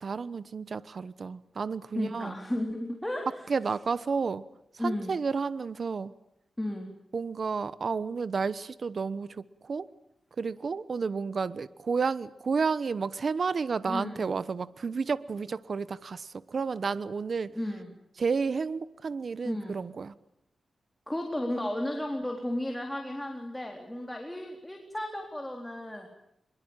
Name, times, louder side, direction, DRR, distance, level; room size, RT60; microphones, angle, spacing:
voice 1, 0.0-2.4 3.5-4.4 4.8-6.1 7.1-9.9 10.4-17.5 18.2-20.1, right 5 dB, 60° right, 16 dB, 1.0 m, -31 dB
voice 2, 1.9-3.3 4.8-5.1 6.6-6.9 13.9-14.2 17.5-17.9 19.4-19.8 21.1-26.1, left 1 dB, 10° left, 2 dB, 4.1 m, -34 dB
25.0 x 22.5 x 9.1 m, 0.79 s
cardioid pair, 85°, 0 cm